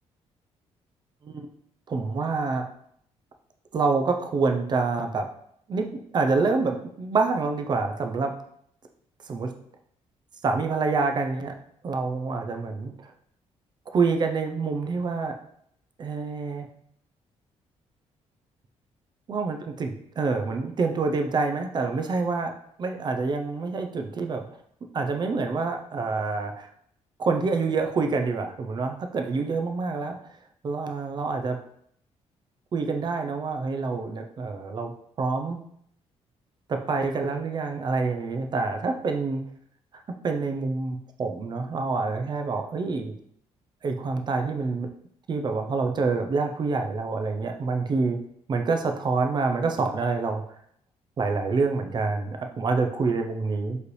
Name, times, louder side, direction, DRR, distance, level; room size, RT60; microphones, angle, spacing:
voice 1, 1.9-2.7 3.7-5.3 5.7-8.3 9.3-9.5 10.4-11.5 11.8-13.1 13.9-15.4 16.0-16.7 19.3-22.5 22.8-24.5 24.9-26.7 27.2-30.2 30.6-31.6 32.7-34.9 35.2-35.6 36.7-39.4 39.9-43.1 43.8-44.9 45.3-48.2 48.5-50.4 51.2-53.8, right 4 dB, 40° right, 5 dB, 0.6 m, -27 dB
4.8 x 3.2 x 3.2 m, 0.68 s
cardioid pair, 125°, 12 cm